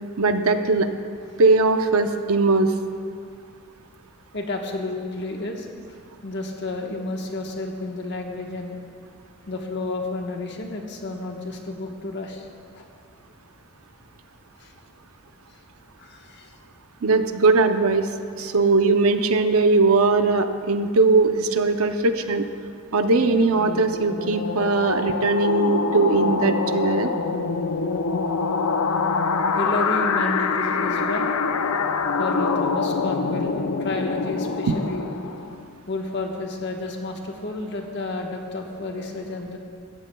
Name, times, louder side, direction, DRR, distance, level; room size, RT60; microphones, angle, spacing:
voice 1, 0.2-0.9 1.4-2.7 17.0-18.1 18.4-22.5 22.9-27.1 34.7-34.8, right 3 dB, 75° right, 8 dB, 0.7 m, -20 dB
voice 2, 4.3-5.7 6.2-8.8 9.5-12.5 12.7-12.9 14.6-14.7 16.0-16.5 29.5-31.3 31.7-31.8 32.2-35.1 35.9-39.6, left 2 dB, 50° left, 1 dB, 1.2 m, -31 dB
sound 1, 23.1-35.7, left 4 dB, 80° left, 0.6 m, -25 dB
17.5 x 13.5 x 2.3 m, 2.3 s
head